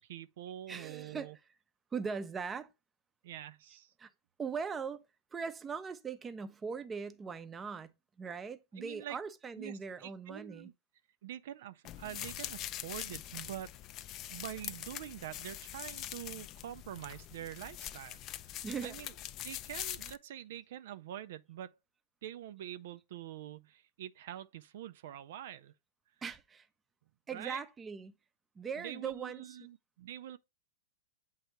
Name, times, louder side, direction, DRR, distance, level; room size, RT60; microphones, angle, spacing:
voice 1, 0.0-1.4 3.2-3.9 8.8-9.2 9.6-10.7 11.2-13.7 14.3-18.2 18.5-19.1 19.4-21.8 22.2-25.7 27.3-27.6 28.8-30.4, right 11 dB, 70° right, 0.3 m, -45 dB
voice 2, 0.7-1.3 1.9-2.7 4.0-4.1 4.4-5.0 5.3-7.9 8.2-10.7 18.6-19.0 26.2-26.7 27.3-28.2 28.6-29.6, right 5 dB, 15° right, 0.5 m, -40 dB
sound 1, 11.8-20.2, left 12 dB, 35° left, 0.4 m, -43 dB
7.9 x 2.8 x 4.4 m
hypercardioid pair, 125°, 0 cm